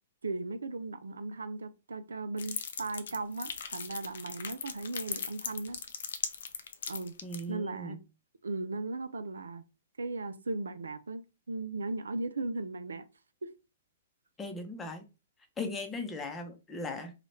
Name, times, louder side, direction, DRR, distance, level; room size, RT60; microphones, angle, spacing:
voice 1, 0.2-5.8 6.9-7.1 7.5-8.0 8.4-9.6 10.0-13.0 13.4-13.5, right 3 dB, 85° right, 0.4 m, -37 dB
sound 1, 2.4-7.4, left 6 dB, 70° left, 0.5 m, -38 dB
voice 2, 7.2-8.0 14.4-15.0 15.6-17.2, left 2 dB, 15° left, 0.7 m, -38 dB
2.9 x 2.4 x 3.1 m
hypercardioid pair, 120°, 0 cm